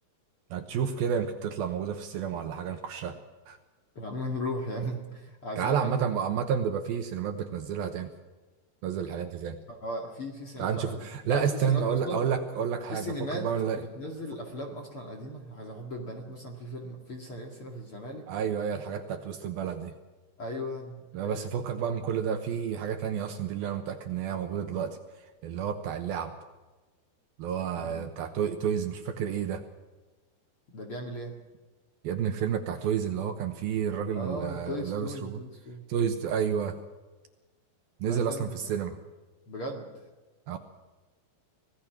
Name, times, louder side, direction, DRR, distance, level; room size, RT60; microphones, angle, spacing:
voice 1, 0.5-3.2 3.5-3.6 5.6-8.1 8.8-9.6 10.6-13.8 18.3-20.0 21.1-26.3 27.4-29.6 32.0-35.4 35.9-36.8 38.0-39.0 40.5-40.6, right 7 dB, 70° right, 6 dB, 2.6 m, -30 dB
voice 2, 3.9-6.2 9.7-12.2 12.9-13.5 13.7-18.3 20.4-21.5 27.7-28.1 30.7-31.4 34.1-35.8 38.0-38.6 39.5-40.1, equal, 40° left, 1 dB, 2.3 m, -37 dB
25.5 x 18.0 x 6.1 m, 1.2 s
omnidirectional pair, 5.1 m